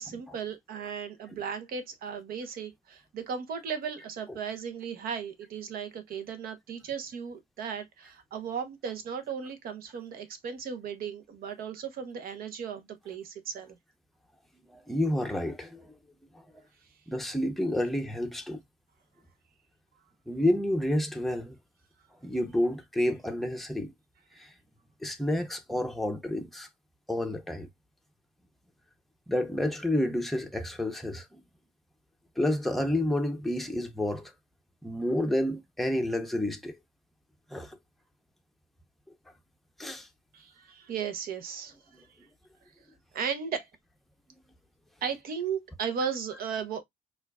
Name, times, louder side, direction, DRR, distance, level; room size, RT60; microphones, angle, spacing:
voice 1, 0.0-13.8 40.3-42.0 43.1-43.7 45.0-46.8, right 7 dB, 60° right, 1.0 m, -36 dB
voice 2, 14.7-15.9 17.1-18.6 20.3-21.6 22.2-23.9 24.4-24.5 25.0-26.7 27.1-27.7 29.3-31.4 32.4-34.3 34.8-36.8 37.5-37.8 39.8-40.1 41.9-42.0, left 1 dB, ahead, 0.7 m, -29 dB
4.3 x 2.5 x 2.3 m
cardioid pair, 100°, 17 cm